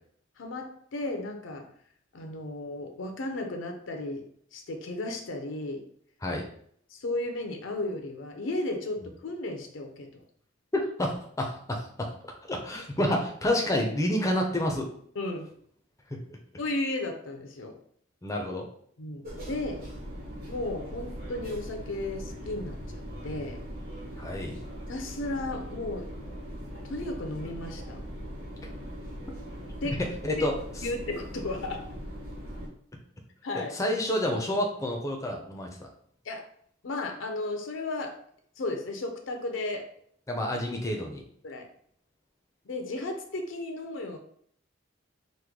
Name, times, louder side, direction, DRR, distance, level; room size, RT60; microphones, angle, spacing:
voice 1, 0.4-1.7 2.1-4.2 4.5-5.8 6.9-10.2 15.2-15.5 16.6-17.7 19.0-19.8 20.5-23.6 24.9-26.1 26.8-28.0 29.8-30.0 30.4-30.5 30.8-31.9 33.4-33.7 36.2-36.5 36.8-38.2 38.6-39.9 41.4-41.7 42.6-44.2, left 2 dB, 70° left, 4 dB, 0.5 m, -34 dB
voice 2, 10.7-12.1 12.5-14.9 18.2-18.7 24.2-24.6 30.2-30.9 33.7-35.9 40.3-41.2, left 1 dB, 15° left, 1 dB, 0.4 m, -29 dB
sound 1, 19.2-32.7, equal, 45° right, 1.2 m, -40 dB
3.1 x 2.2 x 3.5 m, 0.62 s
head